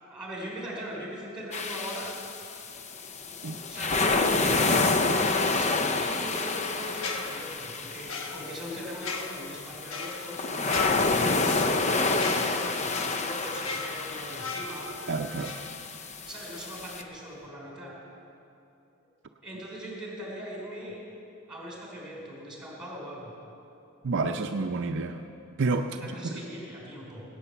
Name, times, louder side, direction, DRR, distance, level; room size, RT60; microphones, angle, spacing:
voice 1, 0.0-2.7 3.7-4.7 5.0-14.9 16.3-17.9 19.4-21.0 21.5-23.3 25.8-27.2, equal, 5° right, -3 dB, 4.2 m, -40 dB
sound 1, 1.5-17.0, left 3 dB, 35° left, 0.6 m, -29 dB
sound 2, 6.9-16.3 16.6-16.8, left 4 dB, 75° left, 1.2 m, -39 dB
voice 2, 15.1-15.6 24.0-25.2 25.6-26.3, right 3 dB, 60° right, 5 dB, 0.5 m, -29 dB
18.0 x 9.1 x 6.9 m, 2.8 s
head